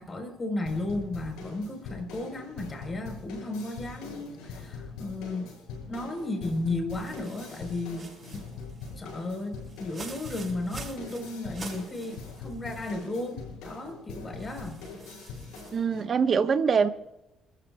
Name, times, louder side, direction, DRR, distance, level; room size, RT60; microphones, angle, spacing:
voice 1, 0.0-5.6 5.9-8.5 9.0-14.8, left 2 dB, 30° left, 4.3 m, -34 dB
sound 1, 0.7-16.0, left 4 dB, 90° left, 7.0 m, -43 dB
sound 2, 6.9-13.1 13.5-13.6 14.4-15.8, right 4 dB, 30° right, 6.3 m, -47 dB
voice 2, 15.7-16.9, right 6 dB, 45° right, 1.2 m, -23 dB
28.5 x 14.0 x 2.4 m
supercardioid pair, 80°, 0 cm